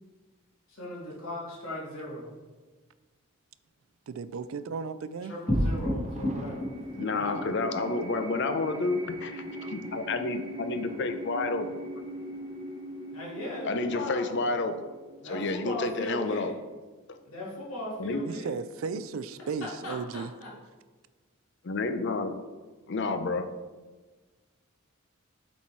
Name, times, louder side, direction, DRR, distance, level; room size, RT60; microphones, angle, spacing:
voice 1, 0.7-2.3 5.3-6.7 7.2-7.4 13.1-14.5 15.2-16.6 17.2-18.6 19.6-20.5, left 1 dB, 85° left, -5 dB, 2.3 m, -38 dB
voice 2, 4.1-5.3 18.2-20.3, right 5 dB, 70° right, 14 dB, 0.4 m, -35 dB
sound 1, 5.5-16.1, equal, 20° left, 1.4 m, -36 dB
Thunder, 5.5-13.2 13.5-13.6 14.0-14.1, right 1 dB, 35° right, 0.6 m, -52 dB
voice 3, 7.0-11.7 13.6-14.7 15.3-16.5 17.1-17.2 18.0-18.2 21.6-22.3 22.9-23.5, left 3 dB, 55° left, 8 dB, 0.6 m, -30 dB
7.3 x 4.3 x 4.5 m, 1.3 s
head